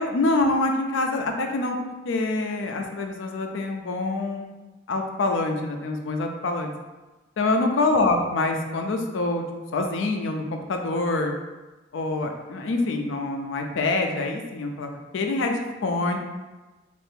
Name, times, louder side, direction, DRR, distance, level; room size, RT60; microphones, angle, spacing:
voice 1, 0.0-1.8 2.0-4.5 4.9-6.7 7.4-9.4 9.7-11.3 11.9-16.2, left 2 dB, 90° left, 4 dB, 0.4 m, -25 dB
2.7 x 2.5 x 3.4 m, 1.2 s
head